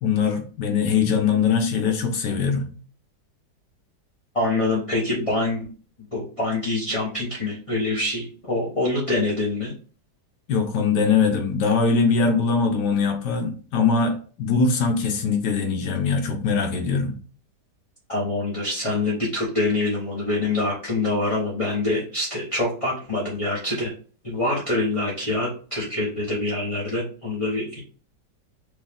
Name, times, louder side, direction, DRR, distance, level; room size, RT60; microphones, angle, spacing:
voice 1, 0.0-2.7 10.5-17.2, left 5 dB, 75° left, 1.5 m, -22 dB
voice 2, 4.3-5.7 6.1-9.7 18.1-23.9 24.2-27.8, left 2 dB, 20° left, 1.0 m, -25 dB
5.0 x 2.6 x 3.5 m
omnidirectional pair, 1.9 m